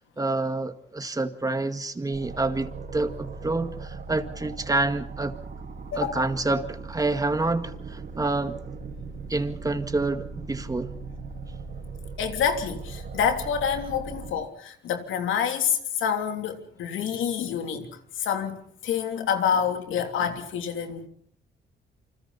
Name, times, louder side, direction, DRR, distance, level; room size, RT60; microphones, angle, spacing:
voice 1, 0.2-5.4 6.0-8.6 9.3-10.9, right 2 dB, 20° right, 2.0 m, -28 dB
sound 1, 2.1-14.3, right 4 dB, 55° right, 4.5 m, -39 dB
voice 2, 5.9-6.3 12.2-21.1, left 8 dB, 80° left, 3.3 m, -27 dB
28.5 x 26.0 x 4.2 m
cardioid pair, 90°, 20 cm